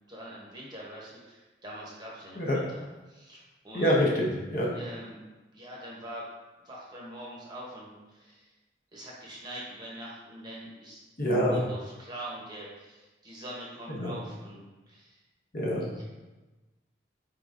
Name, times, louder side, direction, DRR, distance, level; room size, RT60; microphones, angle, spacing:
voice 1, 0.1-3.9 4.7-5.2 5.5-6.2 6.6-8.5 8.9-11.0 11.5-15.2 15.9-16.0, right 1 dB, 25° right, -4 dB, 0.8 m, -44 dB
voice 2, 3.7-4.7 11.2-11.6 13.9-14.1 15.5-15.8, equal, 45° left, -3 dB, 0.8 m, -26 dB
4.6 x 3.6 x 2.5 m, 1.2 s
head